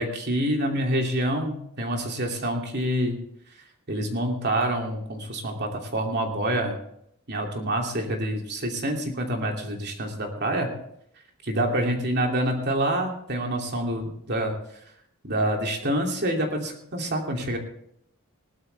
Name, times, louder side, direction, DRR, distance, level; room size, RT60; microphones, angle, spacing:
voice 1, 0.0-3.2 3.9-6.8 7.3-10.7 11.5-14.5 15.3-17.6, right 1 dB, 50° right, 2 dB, 2.8 m, -27 dB
19.5 x 12.5 x 3.5 m, 0.71 s
head